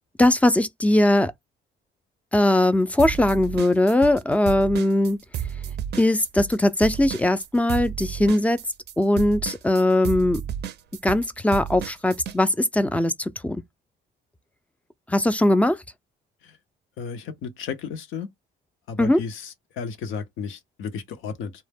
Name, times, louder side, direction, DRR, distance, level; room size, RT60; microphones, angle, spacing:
voice 1, 0.2-1.3 2.3-5.2 6.0-8.6 9.0-10.4 11.0-13.6 15.1-15.8 19.0-19.2, left 1 dB, 5° left, 0.3 m, -20 dB
sound 1, 3.0-4.2 4.5-12.4, right 9 dB, 60° right, 0.4 m, -32 dB
voice 2, 17.0-18.3 18.9-21.5, left 6 dB, 85° left, 0.6 m, -33 dB
2.1 x 2.0 x 3.3 m
cardioid pair, 90°, 20 cm